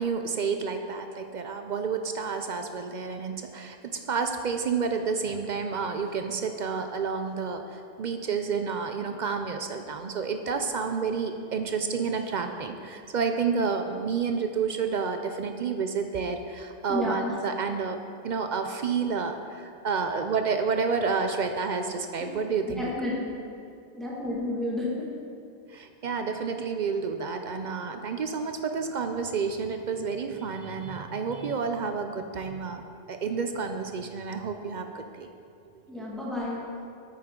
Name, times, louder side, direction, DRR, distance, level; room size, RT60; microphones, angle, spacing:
voice 1, 0.0-18.0 18.2-22.8 25.7-32.8 33.1-35.3, right 5 dB, 55° right, 6 dB, 0.5 m, -30 dB
voice 2, 16.9-17.3 22.2-22.3 22.8-23.3 23.9-25.1 35.9-36.7, left 2 dB, ahead, -6 dB, 1.7 m, -31 dB
9.2 x 8.6 x 3.7 m, 2.5 s
omnidirectional pair, 1.2 m